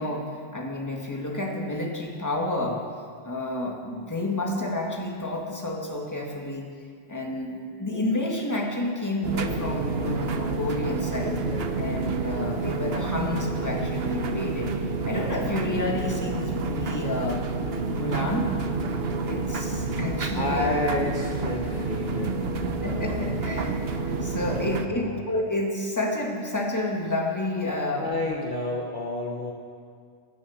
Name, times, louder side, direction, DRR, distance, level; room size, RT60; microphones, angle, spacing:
voice 1, 0.0-2.8 3.2-6.7 7.1-11.4 11.8-14.7 15.0-17.4 17.9-18.5 19.3-20.8 22.8-23.8 24.2-28.1, left 1 dB, 15° left, -1 dB, 1.9 m, -30 dB
sound 1, 9.2-24.9, right 3 dB, 65° right, 1.1 m, -29 dB
voice 2, 20.3-23.5 24.4-25.2 28.0-29.5, left 2 dB, 45° left, 0 dB, 1.4 m, -31 dB
17.0 x 11.0 x 7.1 m, 2.2 s
omnidirectional pair, 1.1 m